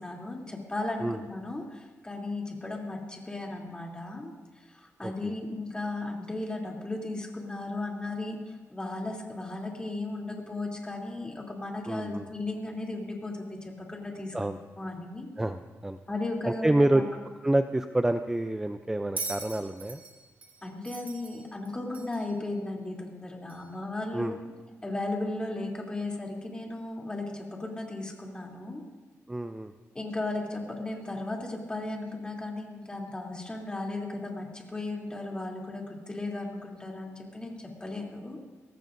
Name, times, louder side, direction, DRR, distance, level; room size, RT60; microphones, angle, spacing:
voice 1, 0.0-4.3 5.0-15.3 16.1-17.0 20.6-24.4 24.8-28.8 29.9-38.4, left 2 dB, 15° left, -1 dB, 3.2 m, -35 dB
voice 2, 11.9-12.3 14.3-14.6 15.4-16.0 16.4-17.0 17.4-20.0 24.1-24.4 29.3-29.7, right 1 dB, 10° right, 8 dB, 0.5 m, -28 dB
Bell, 19.2-22.3 23.5-23.6, right 3 dB, 30° right, 2.6 m, -40 dB
23.0 x 18.0 x 2.7 m, 1.3 s
cardioid pair, 110°, 5 cm